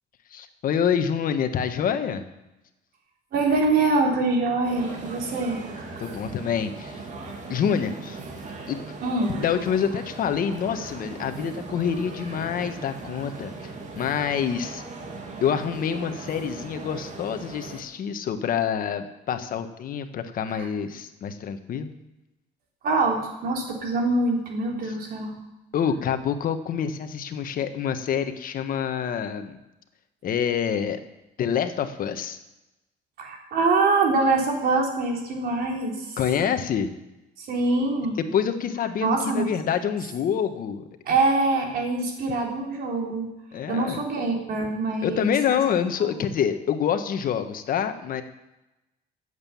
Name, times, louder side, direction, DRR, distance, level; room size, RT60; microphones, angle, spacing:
voice 1, 0.3-2.2 6.0-7.0 7.5-8.2 8.7-8.8 9.4-14.8 15.4-21.9 24.8-24.9 25.7-29.6 30.2-31.0 31.4-32.4 36.2-36.9 38.2-40.8 43.5-44.0 45.0-48.2, left 8 dB, 55° left, 8 dB, 1.4 m, -27 dB
voice 2, 3.3-6.0 9.0-9.4 20.5-20.7 22.8-25.4 33.2-36.2 37.4-38.2 39.0-39.4 41.1-43.3 43.7-45.3 46.0-46.1, right 3 dB, 65° right, 1 dB, 3.7 m, -24 dB
sound 1, 4.6-17.8, right 3 dB, 45° right, 2.8 m, -39 dB
15.0 x 8.2 x 7.2 m, 0.96 s
cardioid pair, 110°, 17 cm